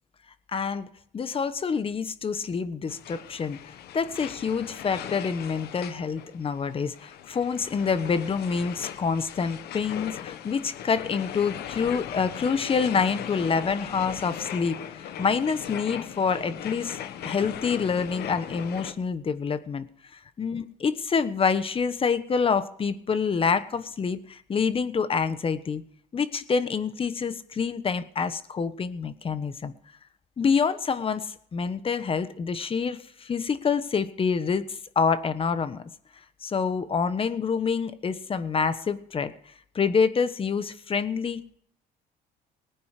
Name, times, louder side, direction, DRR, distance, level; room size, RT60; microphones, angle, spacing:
voice 1, 0.5-0.9 1.1-3.6 3.9-14.8 15.2-19.9 20.1-25.8 26.1-29.7 30.4-35.8 36.4-39.3 39.7-41.6, left 5 dB, 35° left, 12 dB, 1.2 m, -27 dB
sound 1, 2.9-18.9, left 10 dB, 70° left, 1.2 m, -39 dB
19.5 x 9.4 x 5.1 m, 0.66 s
cardioid pair, 110°, 17 cm